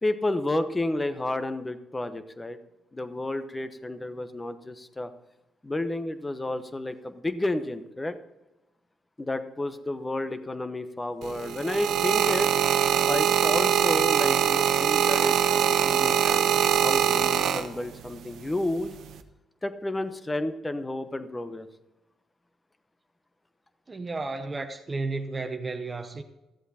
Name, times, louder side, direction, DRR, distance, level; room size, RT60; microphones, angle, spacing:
voice 1, 0.0-2.6 2.9-5.1 5.6-8.2 9.2-12.5 13.1-18.9 19.6-21.7, left 2 dB, 15° left, 1.0 m, -31 dB
sound 1, 11.2-18.1 18.9-19.2, right 9 dB, 75° right, 0.9 m, -23 dB
voice 2, 23.9-26.2, right 3 dB, 25° right, 1.0 m, -33 dB
14.0 x 8.0 x 4.2 m
cardioid pair, 90°, 0 cm